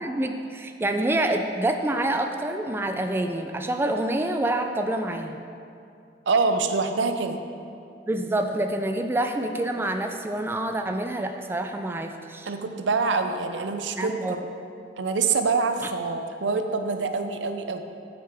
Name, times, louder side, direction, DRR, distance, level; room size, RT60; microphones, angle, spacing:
voice 1, 0.0-5.4 8.1-12.5 14.0-14.5, right 1 dB, 15° right, 5 dB, 0.3 m, -27 dB
voice 2, 6.3-7.4 12.5-14.4 15.0-17.8, right 4 dB, 85° right, 7 dB, 0.5 m, -25 dB
9.0 x 6.7 x 3.4 m, 2.5 s
head